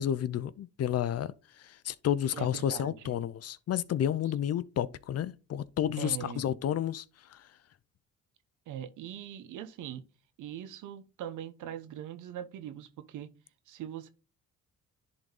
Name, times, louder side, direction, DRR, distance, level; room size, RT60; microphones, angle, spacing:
voice 1, 0.0-7.0 7.3-7.4, left 10 dB, 55° left, 0.6 m, -31 dB
voice 2, 2.3-3.2 6.0-6.5 8.7-10.0 10.4-13.3 13.7-14.1, right 10 dB, 80° right, 1.0 m, -41 dB
10.5 x 3.9 x 3.8 m
cardioid pair, 90°, 30 cm